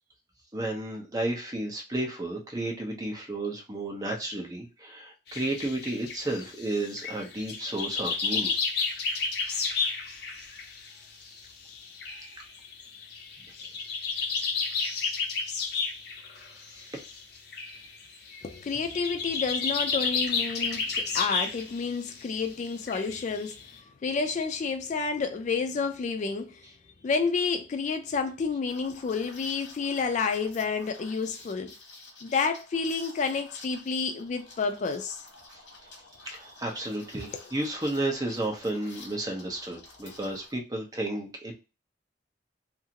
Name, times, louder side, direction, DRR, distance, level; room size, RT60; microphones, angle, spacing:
voice 1, 0.5-8.7 9.4-9.7 16.7-17.0 35.5-35.6 36.2-41.5, right 1 dB, 20° right, 0.8 m, -33 dB
sound 1, 5.3-11.4 11.7-21.9 22.2-22.4 22.9-23.7, left 5 dB, 60° left, 0.7 m, -31 dB
voice 2, 18.4-23.6 24.0-26.7 27.0-31.7 32.2-35.2, left 5 dB, 40° left, 0.3 m, -30 dB
Liquid, 28.7-40.5, left 3 dB, 85° left, 1.0 m, -50 dB
2.7 x 2.5 x 2.8 m
head